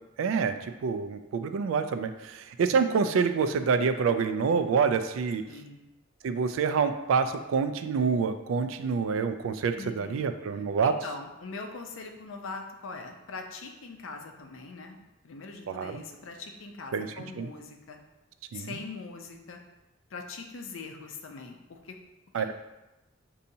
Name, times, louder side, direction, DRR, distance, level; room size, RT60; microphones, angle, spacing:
voice 1, 0.2-5.4 6.2-11.0 15.7-16.0 16.9-17.5 18.5-18.8 22.3-22.5, right 5 dB, 85° right, 9 dB, 0.3 m, -27 dB
voice 2, 5.5-5.8 9.8-10.2 10.8-18.0 18.5-19.6 20.1-22.0 22.3-22.5, left 4 dB, 80° left, 3 dB, 0.5 m, -42 dB
5.4 x 2.7 x 2.7 m, 1.0 s
head